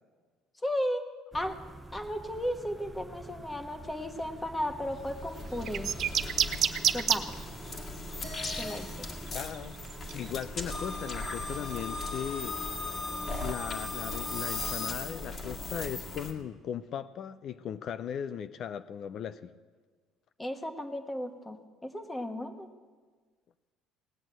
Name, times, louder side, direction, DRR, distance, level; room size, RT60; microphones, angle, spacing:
voice 1, 0.6-1.0 1.3-1.6 1.9-5.9 6.9-7.4 8.6-9.1 20.4-21.6 21.8-22.7, equal, 10° left, 6 dB, 1.2 m, -34 dB
sound 1, 1.3-14.4, right 3 dB, 10° right, 0.6 m, -46 dB
sound 2, 4.7-16.3, left 3 dB, 35° left, 1.9 m, -38 dB
sound 3, 5.7-7.2 8.4-8.6 9.3-10.4, right 9 dB, 50° right, 0.7 m, -27 dB
voice 2, 9.3-9.8 10.1-12.6 13.4-19.5, left 9 dB, 50° left, 12 dB, 0.4 m, -38 dB
18.0 x 6.2 x 8.9 m, 1.5 s
cardioid pair, 125°, 0 cm